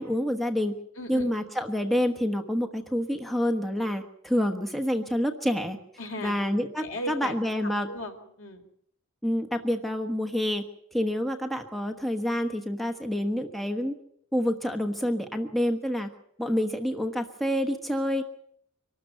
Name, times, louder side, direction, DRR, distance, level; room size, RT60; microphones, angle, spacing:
voice 1, 0.0-0.8 1.1-5.8 6.2-7.9 9.2-10.6 10.9-13.9 14.3-16.1 16.4-18.2, equal, ahead, 3 dB, 1.2 m, -28 dB
voice 2, 1.0-1.4 6.0-6.3 6.8-7.4 7.9-8.7, left 1 dB, 75° left, 5 dB, 4.0 m, -37 dB
24.5 x 13.0 x 9.2 m, 0.71 s
head